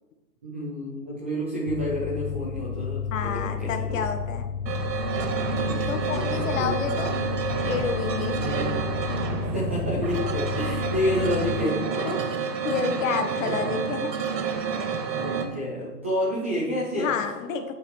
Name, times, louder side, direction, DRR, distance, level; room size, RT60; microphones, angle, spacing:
voice 1, 0.4-4.0 5.6-7.0 8.3-8.7 9.4-11.8 13.3-13.6 15.1-17.1, equal, 10° right, -6 dB, 0.4 m, -30 dB
sound 1, 1.7-11.7, left 7 dB, 85° left, 0.6 m, -32 dB
voice 2, 3.1-4.5 5.9-7.2 7.7-8.5 11.1-11.7 12.0-12.2 12.6-14.1 17.0-17.7, left 6 dB, 50° left, 7 dB, 1.6 m, -30 dB
sound 2, 4.7-15.5, right 6 dB, 90° right, 1.9 m, -29 dB
9.5 x 8.1 x 5.7 m, 1.1 s
hypercardioid pair, 150°, 48 cm